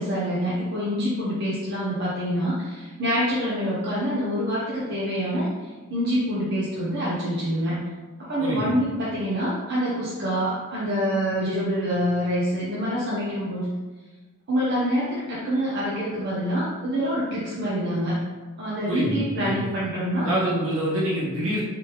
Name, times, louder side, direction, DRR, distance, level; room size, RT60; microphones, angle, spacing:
voice 1, 0.0-7.8 8.2-13.6 14.5-18.2 18.6-20.3, equal, 50° right, -8 dB, 0.7 m, -26 dB
voice 2, 8.4-8.8 18.9-19.7 20.2-21.6, right 1 dB, 70° right, -7 dB, 1.3 m, -26 dB
3.4 x 3.1 x 3.0 m, 1.2 s
head